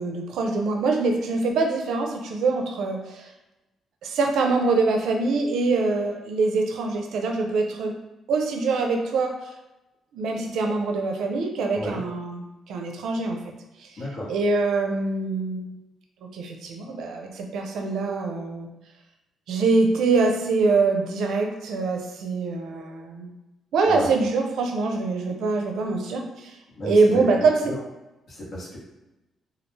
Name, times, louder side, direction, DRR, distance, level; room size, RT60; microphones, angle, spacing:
voice 1, 0.0-3.3 4.0-8.0 8.3-9.5 10.1-13.5 13.8-14.0 14.3-15.7 16.3-18.7 19.5-23.3 23.7-26.6 26.8-27.6, right 3 dB, 75° right, 2 dB, 0.4 m, -24 dB
voice 2, 14.0-14.3 23.8-24.1 26.7-27.3 27.6-27.8 28.3-28.8, left 1 dB, 60° left, -6 dB, 1.0 m, -33 dB
2.3 x 2.1 x 3.1 m, 0.99 s
cardioid pair, 90°, 0 cm